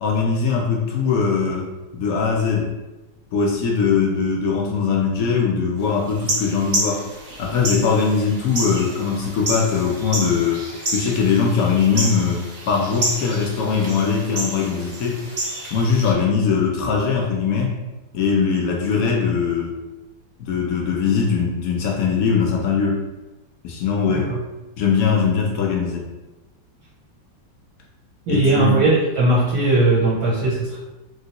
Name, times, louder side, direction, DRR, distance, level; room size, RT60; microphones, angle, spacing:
voice 1, 0.0-2.7 3.3-7.0 7.4-10.6 10.9-15.2 15.7-17.7 18.1-19.8 20.4-23.0 23.6-24.3 24.8-26.1 28.3-28.8, left 5 dB, 75° left, -1 dB, 0.8 m, -21 dB
sound 1, 6.1-16.1, right 1 dB, 40° right, 1.1 m, -29 dB
voice 2, 28.3-30.8, right 2 dB, 65° right, -7 dB, 1.1 m, -18 dB
3.0 x 3.0 x 2.8 m, 1.0 s
omnidirectional pair, 2.0 m